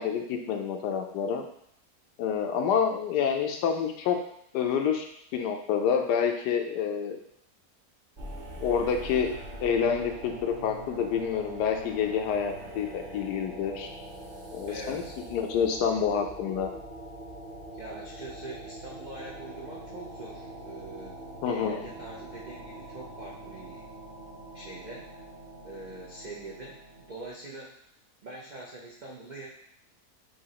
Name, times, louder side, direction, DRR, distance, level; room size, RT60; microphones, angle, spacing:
voice 1, 0.0-1.5 2.2-4.2 4.5-5.1 5.3-7.2 8.6-9.3 9.6-13.9 14.5-15.0 15.3-16.7 21.4-21.9, left 7 dB, 85° left, 4 dB, 1.2 m, -28 dB
sound 1, 8.2-27.3, right 1 dB, 35° right, 0.8 m, -43 dB
voice 2, 14.7-15.1 17.7-21.2 21.5-23.8 24.5-25.1 25.6-27.7 28.2-29.5, right 2 dB, 70° right, -5 dB, 0.4 m, -43 dB
6.0 x 2.8 x 2.9 m, 0.69 s
omnidirectional pair, 1.7 m